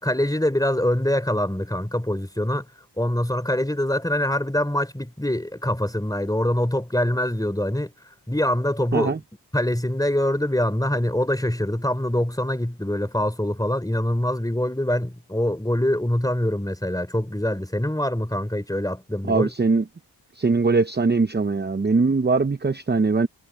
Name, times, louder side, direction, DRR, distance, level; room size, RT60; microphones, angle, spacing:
voice 1, 0.0-2.7 3.0-7.9 8.3-9.2 9.5-19.5, left 1 dB, 10° left, 3.8 m, -24 dB
voice 2, 19.3-19.8 20.3-23.3, right 4 dB, 25° right, 0.8 m, -21 dB
cardioid pair, 50°, 43 cm